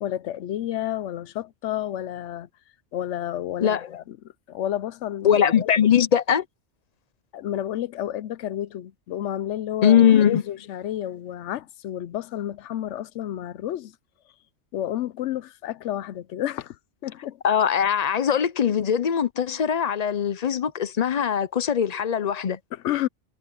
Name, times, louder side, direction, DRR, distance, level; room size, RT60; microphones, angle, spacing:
voice 1, 0.0-2.5 2.9-4.2 4.5-5.7 7.3-13.9 14.7-17.4 22.7-23.1, left 12 dB, 75° left, 0.9 m, -31 dB
voice 2, 3.6-3.9 5.2-6.4 9.8-10.4 17.4-22.6, left 8 dB, 45° left, 0.6 m, -21 dB
omnidirectional pair, 1.2 m